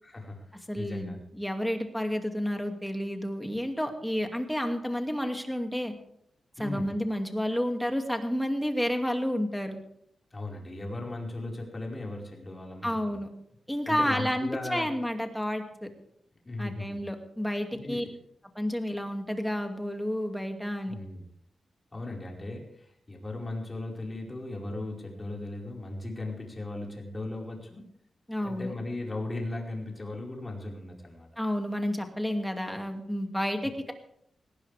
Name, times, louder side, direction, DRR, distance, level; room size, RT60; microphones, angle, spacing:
voice 1, 0.0-0.5 0.7-1.2 6.6-6.9 10.3-13.2 13.9-14.9 16.4-17.0 17.7-18.0 20.9-21.2 21.9-27.9 28.4-31.3, left 2 dB, 25° left, -1 dB, 5.0 m, -37 dB
voice 2, 0.7-5.9 6.6-9.8 12.8-13.3 13.7-15.9 16.6-18.0 18.6-20.9 28.3-28.7 31.4-33.9, equal, 5° left, 4 dB, 2.4 m, -30 dB
18.5 x 18.0 x 3.5 m, 0.72 s
wide cardioid pair, 100°, 0 cm